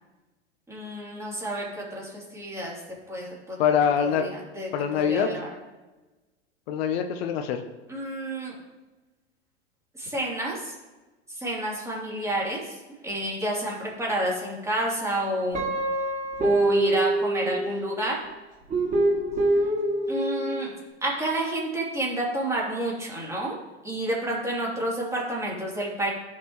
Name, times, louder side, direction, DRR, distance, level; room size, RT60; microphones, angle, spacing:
voice 1, 0.7-1.7 1.9-2.7 3.1-3.6 4.0-4.3 4.5-5.5 7.9-8.5 10.0-10.6 11.4-12.6 13.0-15.6 16.4-18.2 20.1-20.7 21.0-23.6 23.8-26.1, right 1 dB, 10° right, -4 dB, 3.4 m, -29 dB
voice 2, 3.6-4.3 4.7-5.3 6.7-7.6, left 7 dB, 60° left, 6 dB, 0.9 m, -24 dB
Guitar, 15.5-18.0 18.7-20.6, right 1 dB, 25° right, 2.7 m, -25 dB
15.0 x 5.8 x 3.2 m, 1.1 s
hypercardioid pair, 100°, 34 cm